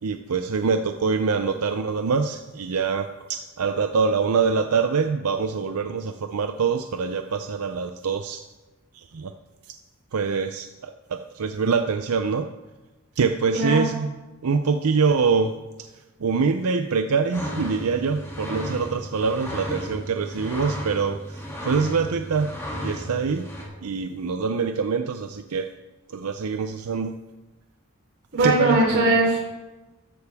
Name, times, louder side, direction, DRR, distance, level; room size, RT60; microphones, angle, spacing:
voice 1, 0.0-8.4 8.9-9.3 10.1-12.5 13.2-14.1 14.4-15.9 16.2-22.6 22.8-23.4 23.8-25.7 26.1-27.2 28.4-28.8, right 5 dB, 85° right, 7 dB, 0.5 m, -24 dB
sound 1, 17.3-23.6, equal, 15° left, 2.6 m, -34 dB
voice 2, 28.3-29.4, right 2 dB, 50° right, -2 dB, 3.9 m, -20 dB
13.5 x 11.0 x 3.5 m, 1.1 s
head